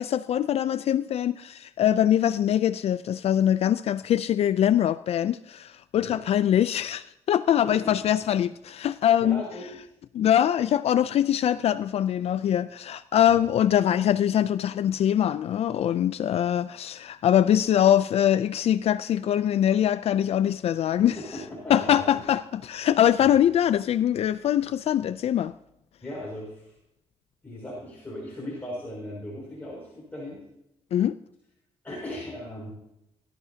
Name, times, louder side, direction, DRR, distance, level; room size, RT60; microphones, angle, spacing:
voice 1, 0.0-9.4 10.1-21.2 21.7-25.5 30.9-31.2, left 10 dB, 60° left, 0.4 m, -23 dB
voice 2, 9.2-9.9 13.3-13.4 21.1-22.2 26.0-26.7 27.4-30.4 31.8-32.7, left 1 dB, 15° left, 6.2 m, -38 dB
22.5 x 13.5 x 2.8 m
cardioid pair, 100°, 12 cm